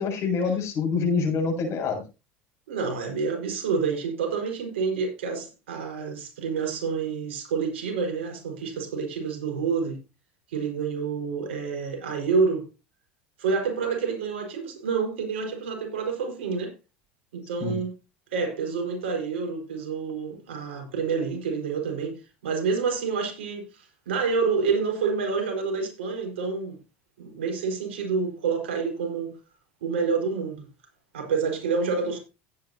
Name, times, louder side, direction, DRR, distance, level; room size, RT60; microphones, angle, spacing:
voice 1, 0.0-2.0 17.6-17.8, left 5 dB, 50° left, 7.1 m, -26 dB
voice 2, 2.7-10.0 10.5-12.7 13.4-16.7 17.3-17.9 18.3-26.8 27.2-29.4 29.8-30.6 31.1-32.2, right 5 dB, 90° right, 4.8 m, -28 dB
16.0 x 9.4 x 2.8 m
supercardioid pair, 95°, 6 cm